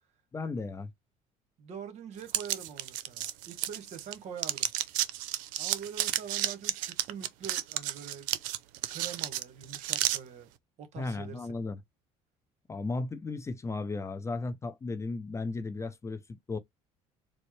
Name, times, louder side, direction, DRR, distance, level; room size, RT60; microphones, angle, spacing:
voice 1, 0.3-0.9 11.0-11.8 12.7-16.6, left 3 dB, 20° left, 0.6 m, -35 dB
voice 2, 1.6-4.7 5.6-8.3 8.9-10.5 10.8-11.5, right 7 dB, 55° right, 1.2 m, -44 dB
sound 1, 2.3-4.1 4.4-10.2, right 13 dB, 80° right, 0.5 m, -32 dB
4.2 x 2.0 x 3.2 m
cardioid pair, 105°, 14 cm